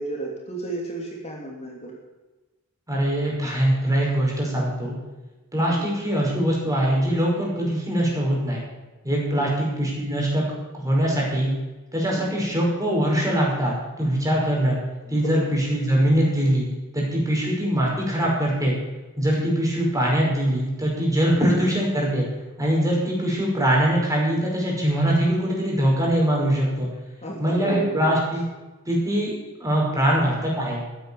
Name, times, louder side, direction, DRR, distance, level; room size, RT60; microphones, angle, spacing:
voice 1, 0.0-1.9 5.6-5.9 9.3-9.5 12.1-12.4 15.1-15.3 27.2-28.1 29.9-30.3, right 2 dB, 30° left, -2 dB, 3.0 m, -33 dB
voice 2, 2.9-5.0 5.5-8.6 9.0-10.4 10.7-11.5 11.9-14.8 15.1-18.7 19.2-22.3 22.6-26.9 27.4-28.4 28.9-30.8, right 1 dB, 15° right, -3 dB, 5.4 m, -22 dB
14.5 x 10.0 x 7.2 m, 1.2 s
head